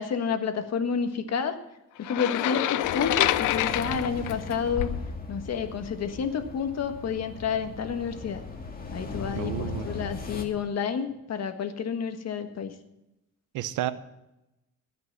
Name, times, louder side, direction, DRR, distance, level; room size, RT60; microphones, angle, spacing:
voice 1, 0.0-1.6 2.0-4.9 5.3-8.4 8.9-12.7, left 6 dB, 60° left, 8 dB, 1.5 m, -30 dB
sound 1, 2.0-5.1, left 14 dB, 85° left, 0.6 m, -27 dB
sound 2, 2.8-10.4, left 3 dB, 30° left, 2.1 m, -38 dB
voice 2, 9.3-9.9 13.5-13.9, right 12 dB, 85° right, 14 dB, 0.8 m, -31 dB
16.5 x 6.1 x 7.3 m, 0.91 s
cardioid pair, 90°, 30 cm